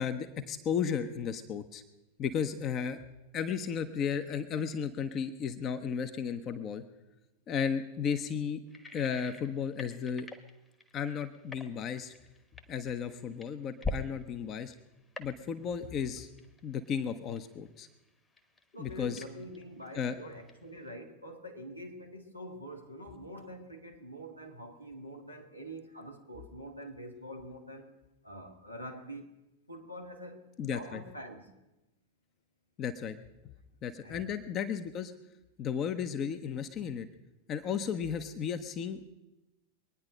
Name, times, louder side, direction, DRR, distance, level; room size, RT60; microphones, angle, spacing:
voice 1, 0.0-1.8 2.2-3.0 3.3-6.8 7.5-8.6 8.9-10.3 10.9-12.1 12.7-14.7 15.2-16.3 16.6-17.9 18.8-19.2 19.9-20.1 30.6-31.0 32.8-33.2 33.8-35.1 35.6-37.1 37.5-39.0, left 7 dB, 30° left, 10 dB, 0.8 m, -34 dB
sound 1, 8.7-14.2 14.5-14.9 15.2-15.8 16.2-16.6 16.8-18.1 18.4-20.2 20.5-20.9, left 3 dB, 15° left, 1.2 m, -42 dB
voice 2, 18.7-27.9 28.2-29.3 29.7-31.5 34.0-34.3, equal, 90° left, 1 dB, 2.0 m, -45 dB
23.0 x 9.7 x 5.2 m, 0.98 s
figure-of-eight pair, 90°, 0 cm